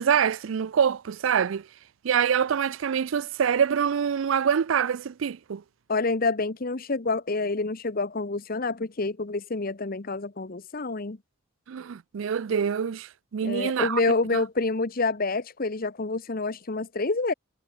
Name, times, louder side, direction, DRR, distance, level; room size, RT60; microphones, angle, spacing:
voice 1, 0.0-1.7 2.0-5.6 11.7-14.0 14.3-14.4, right 7 dB, 75° right, 0.4 m, -25 dB
voice 2, 5.9-11.2 13.4-17.3, left 3 dB, 45° left, 1.0 m, -27 dB
head